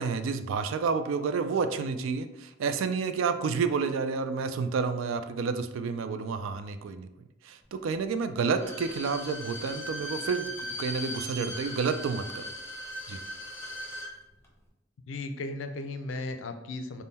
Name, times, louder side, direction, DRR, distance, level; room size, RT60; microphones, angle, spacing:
voice 1, 0.0-7.1 7.4-12.4 13.1-13.2, right 5 dB, 85° right, 10 dB, 0.3 m, -30 dB
Bowed string instrument, 8.5-14.1 14.4-14.5, equal, 15° left, 0.6 m, -38 dB
voice 2, 15.1-17.0, left 2 dB, 70° left, 7 dB, 0.4 m, -36 dB
3.5 x 2.1 x 4.0 m, 0.90 s
head